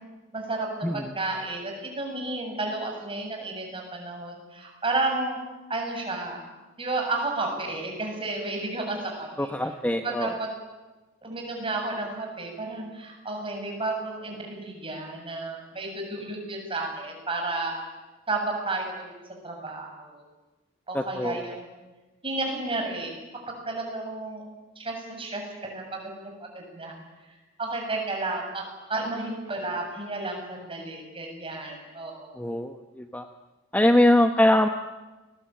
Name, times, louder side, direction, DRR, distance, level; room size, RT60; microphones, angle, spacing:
voice 1, 0.3-5.4 5.7-6.4 6.8-10.5 11.2-17.8 18.3-19.1 19.4-20.2 20.9-21.7 22.2-23.1 23.5-24.4 24.8-28.6 28.9-32.4, right 2 dB, 25° right, 2 dB, 7.5 m, -32 dB
voice 2, 9.4-10.3 20.9-21.4 32.4-33.2 33.7-34.7, left 1 dB, 10° left, 6 dB, 1.1 m, -22 dB
29.5 x 21.0 x 9.1 m, 1.2 s
head